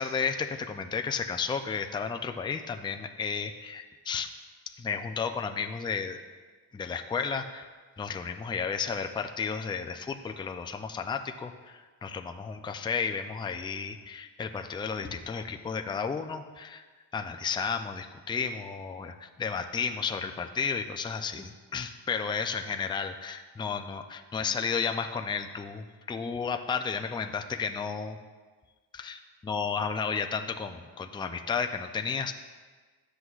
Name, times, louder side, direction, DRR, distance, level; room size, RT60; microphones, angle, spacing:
voice 1, 0.0-4.3 4.7-6.2 6.7-7.7 8.0-16.8 17.1-28.2 28.9-32.3, left 6 dB, 10° left, 6 dB, 0.3 m, -33 dB
12.5 x 7.9 x 2.4 m, 1.4 s
wide cardioid pair, 130°, 42 cm